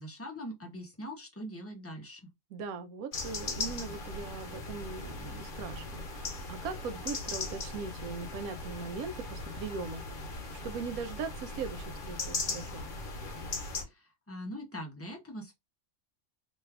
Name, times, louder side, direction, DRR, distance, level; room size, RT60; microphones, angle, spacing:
voice 1, 0.0-2.3 13.8-15.5, equal, 20° left, 0.4 m, -42 dB
voice 2, 2.5-10.0 10.5-12.9, right 5 dB, 80° right, 1.1 m, -40 dB
sound 1, 3.1-13.8, left 3 dB, 45° left, 0.9 m, -39 dB
3.0 x 2.3 x 3.3 m
omnidirectional pair, 1.5 m